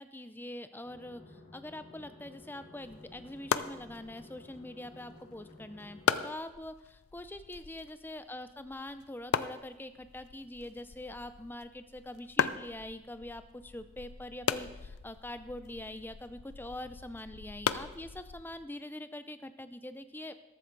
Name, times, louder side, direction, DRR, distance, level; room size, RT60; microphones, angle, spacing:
voice 1, 0.0-20.3, left 1 dB, 10° left, 11 dB, 0.5 m, -44 dB
sound 1, 0.8-6.2, left 2 dB, 45° left, 1.8 m, -54 dB
sound 2, 2.8-18.7, left 7 dB, 85° left, 0.5 m, -38 dB
14.0 x 12.5 x 3.9 m, 1.0 s
head